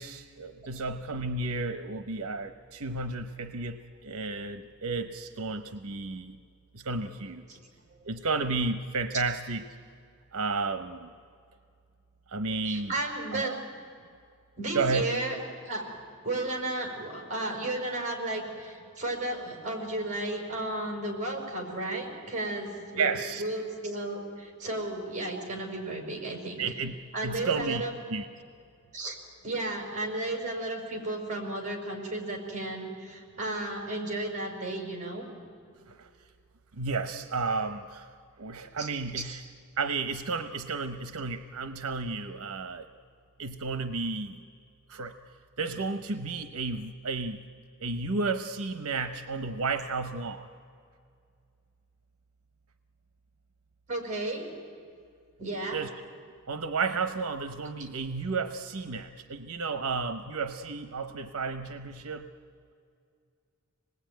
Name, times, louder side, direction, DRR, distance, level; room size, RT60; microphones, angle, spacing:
voice 1, 0.0-6.4 6.7-7.4 8.1-9.6 10.3-11.1 12.3-12.9 13.3-13.6 14.7-15.1 23.0-23.4 26.6-26.9 27.2-27.8 28.1-28.3 35.9-36.1 36.7-38.1 38.4-39.4 39.8-42.9 43.4-44.4 44.9-45.1 45.6-47.4 47.8-50.5 55.7-55.9 56.5-62.3, right 4 dB, 85° right, 9 dB, 0.9 m, -32 dB
voice 2, 12.6-13.5 14.6-15.8 16.2-23.1 23.4-26.7 27.1-27.9 28.9-29.2 29.4-35.2 38.8-38.9 53.9-54.5 55.4-55.8, right 2 dB, 35° right, 3 dB, 5.0 m, -33 dB
26.0 x 20.0 x 9.3 m, 2.3 s
head